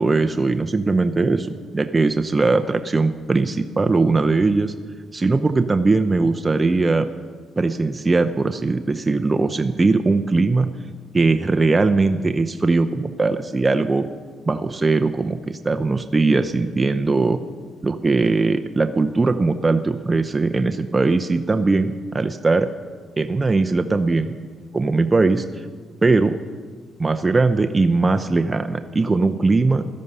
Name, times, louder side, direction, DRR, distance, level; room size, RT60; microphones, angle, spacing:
voice 1, 0.0-4.7 5.1-7.1 7.6-10.7 11.1-14.1 14.5-17.4 17.8-22.7 23.2-24.3 24.7-25.4 26.0-26.4 27.0-29.9, right 3 dB, 25° right, 7 dB, 0.7 m, -20 dB
16.5 x 13.0 x 5.5 m, 1.5 s
cardioid pair, 90°, 0 cm